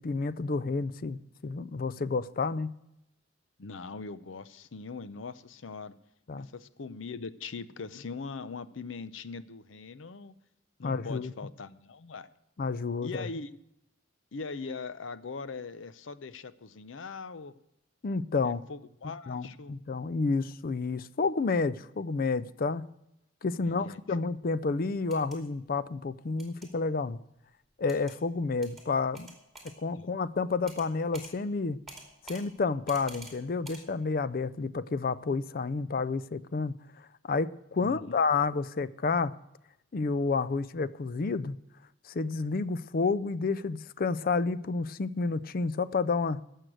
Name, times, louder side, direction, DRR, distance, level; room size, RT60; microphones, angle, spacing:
voice 1, 0.0-2.7 6.3-6.5 10.8-11.3 12.6-13.3 18.0-18.6 19.3-22.9 23.4-27.2 27.8-29.3 29.8-31.8 32.2-36.8 37.3-39.3 39.9-41.6 42.1-46.4, left 4 dB, 50° left, 0.4 m, -30 dB
voice 2, 3.6-6.0 6.4-10.3 10.8-12.3 13.0-13.5 14.3-17.5 18.4-19.7 23.6-24.0 29.9-30.1 37.8-38.2, left 4 dB, 90° left, 0.7 m, -41 dB
sound 1, 25.0-25.4 26.4-26.7 27.9-28.2 28.6-28.8 29.1-29.7 30.7-30.9 31.1-31.3 31.9-32.4 32.9-33.3 33.6-33.8, right 2 dB, ahead, 2.7 m, -47 dB
15.5 x 6.5 x 7.6 m
head